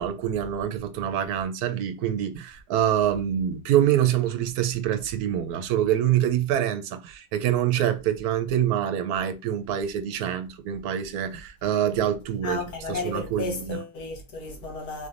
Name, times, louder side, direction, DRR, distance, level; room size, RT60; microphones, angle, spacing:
voice 1, 0.0-12.6 12.9-13.8, right 10 dB, 75° right, 1.1 m, -25 dB
voice 2, 12.4-15.1, left 3 dB, 85° left, 1.8 m, -33 dB
4.0 x 3.4 x 2.4 m
omnidirectional pair, 1.6 m